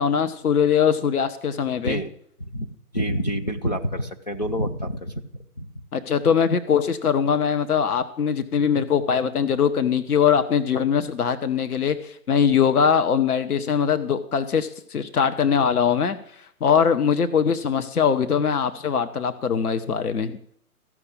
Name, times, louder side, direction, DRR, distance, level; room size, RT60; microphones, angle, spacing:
voice 1, 0.0-2.0 5.9-16.2 16.6-20.4, left 7 dB, 75° left, 10 dB, 1.1 m, -21 dB
voice 2, 2.4-5.7, equal, 30° left, 5 dB, 0.5 m, -28 dB
14.0 x 6.1 x 8.5 m, 0.65 s
hypercardioid pair, 155°, 45 cm